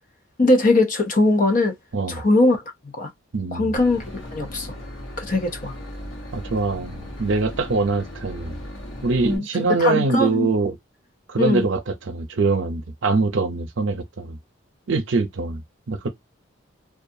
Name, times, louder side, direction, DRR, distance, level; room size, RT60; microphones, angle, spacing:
voice 1, 0.4-1.7 2.1-2.6 3.0-3.1 3.5-4.7 5.2-5.7 9.2-10.5 11.4-11.6, left 2 dB, 40° left, 0.7 m, -20 dB
voice 2, 3.3-3.7 6.3-8.6 9.0-10.8 11.3-14.4 14.9-16.1, right 3 dB, 70° right, 0.6 m, -23 dB
Boat Water vehicle / Engine, 3.8-9.4, equal, 85° left, 1.1 m, -37 dB
2.5 x 2.3 x 2.6 m
head